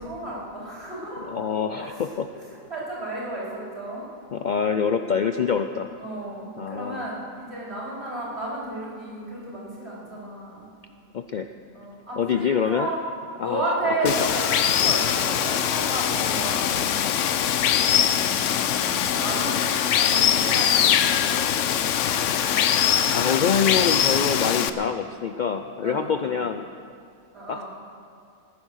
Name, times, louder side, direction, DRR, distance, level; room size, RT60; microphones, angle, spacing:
voice 1, 0.0-1.3 1.8-2.0 2.3-2.4 2.7-4.1 6.0-10.6 11.7-13.0 13.4-17.3 18.0-20.9 21.2-21.4 25.8-26.3 27.3-27.6, right 1 dB, 45° right, -6 dB, 4.8 m, -33 dB
voice 2, 1.2-2.3 4.3-6.0 6.6-7.1 11.1-11.5 12.2-12.9 13.4-14.3 22.6-26.7 27.5-27.6, left 6 dB, 80° left, 7 dB, 0.4 m, -26 dB
Water, 14.1-24.7, left 9 dB, 65° left, 0.9 m, -22 dB
19.0 x 10.5 x 6.4 m, 2.4 s
omnidirectional pair, 1.5 m